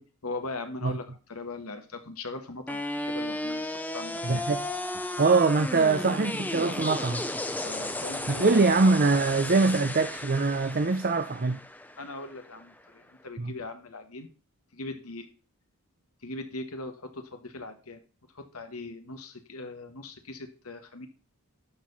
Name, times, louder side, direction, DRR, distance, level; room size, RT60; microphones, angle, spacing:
voice 1, 0.0-3.6 3.9-4.4 7.6-8.5 12.0-14.3 14.7-15.3 16.2-18.0 18.3-21.1, left 2 dB, 80° left, 1.5 m, -40 dB
sound 1, 2.7-12.7, left 1 dB, 10° left, 0.7 m, -34 dB
voice 2, 4.2-4.7 5.2-7.3 8.3-11.6 13.4-13.5, right 3 dB, 45° right, 0.7 m, -23 dB
12.0 x 4.7 x 5.5 m
head